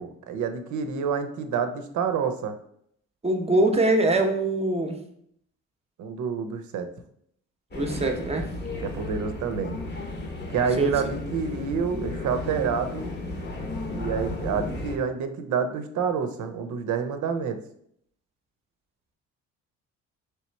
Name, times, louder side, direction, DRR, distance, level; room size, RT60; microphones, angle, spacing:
voice 1, 0.0-2.5 6.0-6.9 8.8-9.8 10.5-13.1 13.9-17.6, right 6 dB, 75° right, 8 dB, 0.6 m, -28 dB
voice 2, 3.2-5.0 7.7-8.5 10.8-10.9, right 2 dB, 20° right, 3 dB, 0.7 m, -23 dB
sound 1, 7.7-15.0, left 2 dB, 35° left, 0.8 m, -34 dB
3.3 x 3.0 x 4.4 m, 0.69 s
cardioid pair, 90°, 30 cm